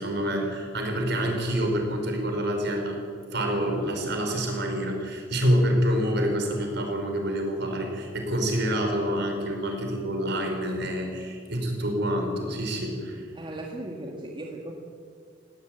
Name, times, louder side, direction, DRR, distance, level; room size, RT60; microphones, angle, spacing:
voice 1, 0.0-3.0 3.3-13.3, equal, 60° right, 2 dB, 5.1 m, -27 dB
Bowed string instrument, 5.4-10.6, left 2 dB, 10° right, 7.1 m, -49 dB
voice 2, 13.3-14.7, right 1 dB, 25° right, 0 dB, 2.0 m, -37 dB
19.0 x 17.0 x 9.2 m, 2.1 s
head